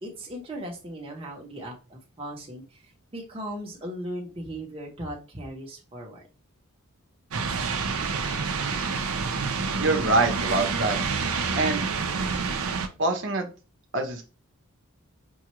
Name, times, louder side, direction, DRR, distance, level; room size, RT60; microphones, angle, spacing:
voice 1, 0.0-6.2, equal, 25° right, -1 dB, 0.9 m, -38 dB
sound 1, 7.3-12.9, right 5 dB, 85° right, 0.6 m, -28 dB
voice 2, 9.8-11.0 11.5-11.9 13.0-13.4 13.9-14.2, right 2 dB, 55° right, 4 dB, 0.9 m, -24 dB
5.4 x 2.3 x 3.0 m, 0.32 s
head